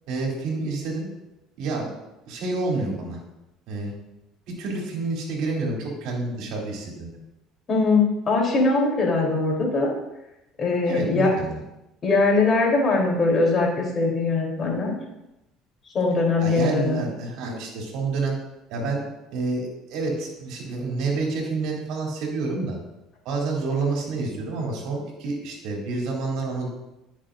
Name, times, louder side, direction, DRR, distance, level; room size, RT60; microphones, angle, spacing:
voice 1, 0.1-1.1 1.6-1.9 2.3-3.2 3.7-3.9 4.5-7.2 10.8-11.6 16.4-18.3 18.7-19.0 19.3-22.8 23.2-26.7, right 3 dB, 65° right, -1 dB, 3.0 m, -28 dB
voice 2, 7.7-9.9 10.6-11.3 12.0-14.9 15.9-17.0, left 3 dB, 40° left, -1 dB, 3.4 m, -21 dB
14.5 x 6.7 x 2.6 m, 0.93 s
hypercardioid pair, 70°, 0 cm